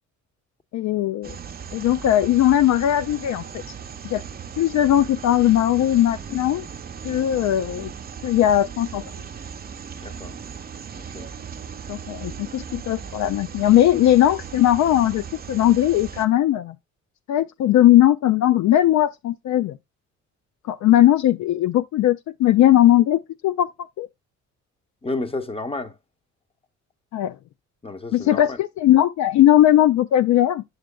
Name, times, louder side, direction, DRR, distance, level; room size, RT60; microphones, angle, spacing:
voice 1, 0.7-1.3 1.7-3.6 4.0-4.2 4.6-6.7 7.0-7.9 8.2-9.0 11.9-16.7 17.3-19.8 20.7-23.7 24.0-24.1 27.1-27.3 28.1-30.6, left 12 dB, 70° left, 0.5 m, -18 dB
sound 1, 1.2-16.2, right 7 dB, 30° right, 0.6 m, -37 dB
voice 2, 10.0-10.4 10.9-11.3 25.0-25.9 27.8-28.6, left 2 dB, 20° left, 1.0 m, -31 dB
7.9 x 6.3 x 2.2 m
cardioid pair, 90°, 30 cm